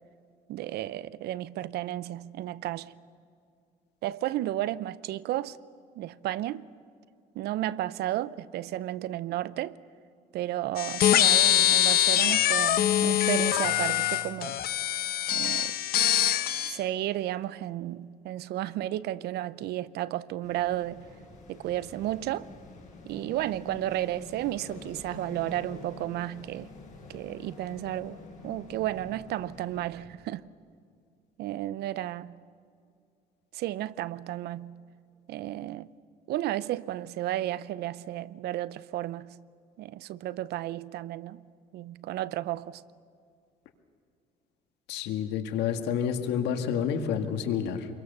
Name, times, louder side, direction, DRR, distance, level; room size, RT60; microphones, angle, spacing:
voice 1, 0.5-2.9 4.0-5.6 6.0-6.7 7.3-9.8 10.3-14.6 15.3-15.7 16.7-21.1 21.5-22.5 23.0-26.7 27.1-30.4 31.4-32.4 33.5-34.8 35.3-35.9 36.3-39.4 39.8-41.4 41.7-42.8, right 14 dB, 75° right, 0.7 m, -33 dB
sound 1, 10.8-16.8, left 12 dB, 65° left, 1.0 m, -24 dB
sound 2, 20.4-29.9, left 4 dB, 45° left, 6.7 m, -47 dB
voice 2, 44.9-47.9, left 8 dB, 85° left, 1.9 m, -29 dB
27.0 x 22.5 x 6.9 m
cardioid pair, 110°, 17 cm